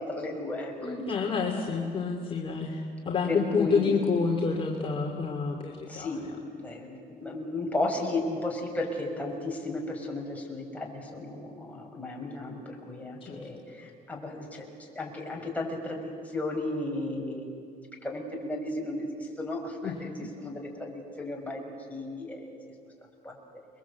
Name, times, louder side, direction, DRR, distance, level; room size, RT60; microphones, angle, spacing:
voice 1, 0.1-1.2 3.3-4.0 5.9-6.2 6.5-12.6 12.9-13.6 14.1-14.6 15.0-17.5 18.0-19.1 19.4-20.1 20.4-20.5 20.8-20.9 21.2-21.6 21.9-22.4 23.2-23.3, left 2 dB, 10° left, -1 dB, 5.7 m, -34 dB
voice 2, 0.8-6.2 13.3-13.5 19.8-19.9, left 5 dB, 30° left, -1 dB, 2.7 m, -28 dB
29.0 x 22.5 x 8.3 m, 2.3 s
cardioid pair, 110°, 17 cm